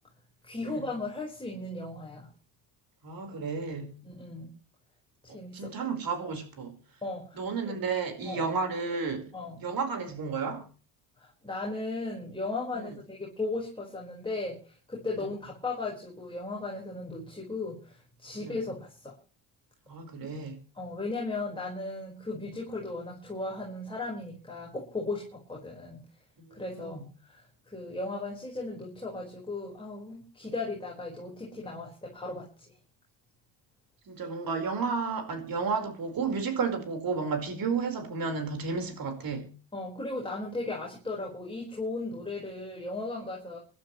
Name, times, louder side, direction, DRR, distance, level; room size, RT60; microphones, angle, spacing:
voice 1, 0.4-2.3 4.0-4.5 5.2-5.7 7.0-7.7 8.2-8.6 9.3-9.6 11.2-19.1 20.2-20.3 20.7-26.0 26.5-32.5 39.7-43.6, left 2 dB, 10° left, 5.0 m, -36 dB
voice 2, 3.0-4.0 5.5-6.8 7.4-9.3 9.6-10.7 12.7-12.9 18.4-18.6 19.9-20.6 26.5-27.0 34.1-39.5, right 5 dB, 50° right, 5.0 m, -32 dB
26.0 x 12.5 x 3.3 m
cardioid pair, 105°, 44 cm